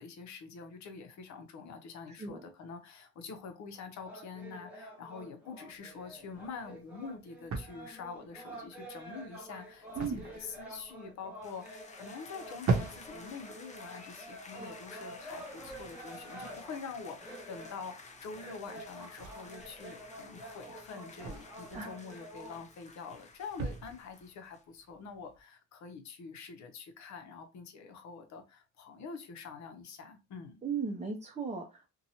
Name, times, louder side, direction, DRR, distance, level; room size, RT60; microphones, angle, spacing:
voice 1, 0.0-30.5, left 5 dB, 65° left, 0.7 m, -46 dB
sound 1, 4.0-22.6, right 1 dB, 5° right, 1.1 m, -49 dB
sound 2, 5.7-25.4, right 4 dB, 65° right, 0.8 m, -42 dB
sound 3, 11.4-24.6, left 4 dB, 25° left, 0.5 m, -53 dB
voice 2, 30.6-31.9, right 5 dB, 25° right, 0.5 m, -36 dB
2.8 x 2.2 x 2.7 m
cardioid pair, 90°, 30 cm